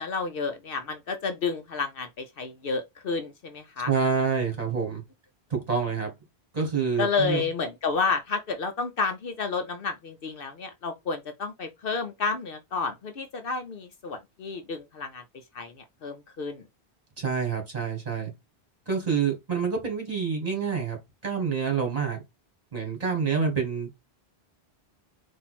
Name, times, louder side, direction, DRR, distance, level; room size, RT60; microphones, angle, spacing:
voice 1, 0.0-3.9 7.0-15.2 15.5-15.7 16.0-16.6, left 4 dB, 60° left, 0.8 m, -30 dB
voice 2, 3.9-5.0 5.7-6.1 6.5-7.4 17.2-18.3 18.9-22.2 22.7-23.9, right 6 dB, 35° right, 2.0 m, -27 dB
4.2 x 2.7 x 4.1 m
omnidirectional pair, 1.1 m